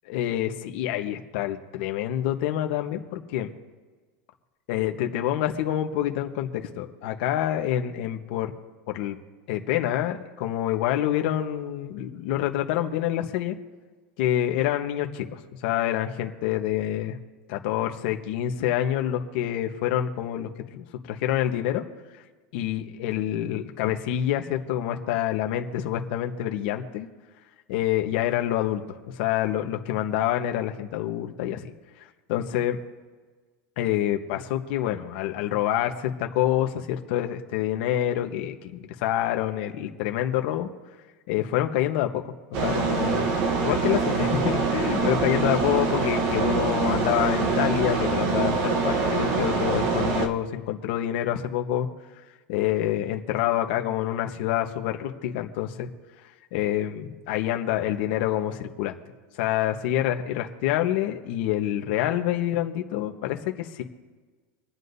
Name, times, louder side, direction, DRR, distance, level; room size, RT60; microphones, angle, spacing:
voice 1, 0.1-3.5 4.7-8.5 8.9-9.2 9.5-13.6 14.2-17.2 17.5-21.8 22.5-27.1 27.7-28.8 29.2-31.7 32.3-32.8 33.8-40.7 41.3-43.3 43.6-51.9 52.5-55.9 56.5-59.0 59.4-63.8, left 12 dB, 50° left, 4 dB, 1.1 m, -27 dB
sound 1, 42.5-50.3, right 4 dB, 40° right, 1.1 m, -24 dB
27.0 x 9.6 x 2.7 m, 1.4 s
supercardioid pair, 180°, 7 cm